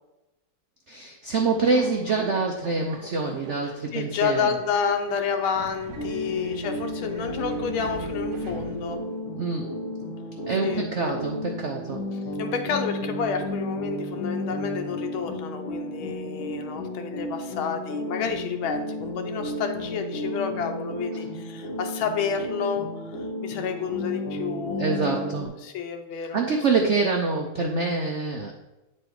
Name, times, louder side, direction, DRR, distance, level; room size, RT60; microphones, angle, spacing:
voice 1, 0.9-4.5 9.4-9.8 10.5-12.0 24.8-25.5 26.2-28.5, right 4 dB, 85° right, 2 dB, 0.6 m, -26 dB
Subway metro underground, 1.6-9.2, right 3 dB, 65° right, 1.5 m, -43 dB
voice 2, 3.9-9.0 10.6-11.2 12.4-25.4 25.6-26.4, left 6 dB, 85° left, 5 dB, 1.7 m, -30 dB
sound 1, 6.0-25.5, left 1 dB, 70° left, 1.9 m, -33 dB
9.0 x 4.3 x 4.7 m, 1.0 s
omnidirectional pair, 2.2 m